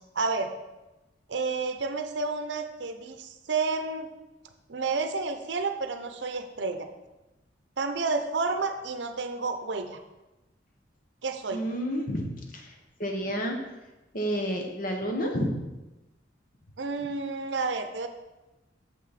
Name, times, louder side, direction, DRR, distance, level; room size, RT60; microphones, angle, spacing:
voice 1, 0.1-0.5 1.3-4.1 4.7-6.9 7.8-10.0 11.2-11.6 16.8-18.1, right 4 dB, 70° right, 7 dB, 0.7 m, -30 dB
voice 2, 11.5-12.3 12.5-13.6 14.1-15.6, equal, 50° left, 2 dB, 1.2 m, -30 dB
7.6 x 6.1 x 4.2 m, 1.0 s
head